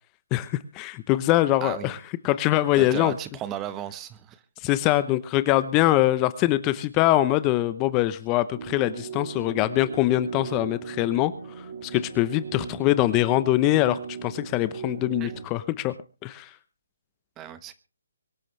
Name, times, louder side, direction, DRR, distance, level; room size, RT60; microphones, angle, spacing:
voice 1, 0.3-3.1 4.6-15.9 16.2-16.5, left 15 dB, 20° left, 15 dB, 0.8 m, -23 dB
voice 2, 1.6-1.9 2.8-4.4 15.2-15.3 17.4-17.7, right 11 dB, 15° right, 13 dB, 1.2 m, -35 dB
sound 1, 8.5-15.4, right 6 dB, 45° right, 4.5 m, -38 dB
24.0 x 12.0 x 3.3 m, 0.33 s
hypercardioid pair, 155°, 0 cm